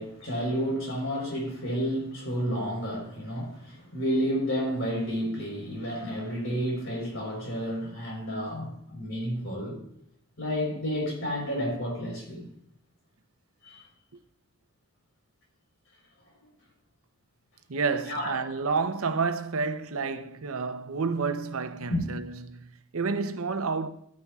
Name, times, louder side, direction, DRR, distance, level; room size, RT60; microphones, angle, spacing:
voice 1, 0.0-9.8 10.4-12.5 13.6-13.8 18.1-18.4 21.9-22.0, equal, 60° left, 3.9 m, -31 dB
voice 2, 17.7-23.9, right 4 dB, 85° right, 0.7 m, -30 dB
14.0 x 9.7 x 2.4 m
head